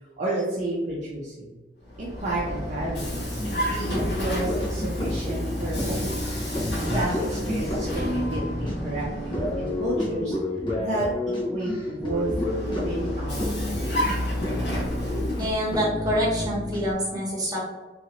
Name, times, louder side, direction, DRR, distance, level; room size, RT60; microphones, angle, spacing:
voice 1, 0.2-1.6 2.0-6.2 6.8-10.3 10.7-11.1 11.5-12.3 12.8-13.7, right 1 dB, 45° right, -6 dB, 0.6 m, -31 dB
Vehicle, 1.8-10.3 12.0-15.9, equal, 65° left, 1.1 m, -31 dB
sound 1, 3.4-16.9, left 1 dB, 30° left, 0.6 m, -30 dB
voice 2, 15.4-17.6, equal, 20° right, -6 dB, 1.1 m, -26 dB
3.1 x 2.6 x 2.9 m, 1.2 s
head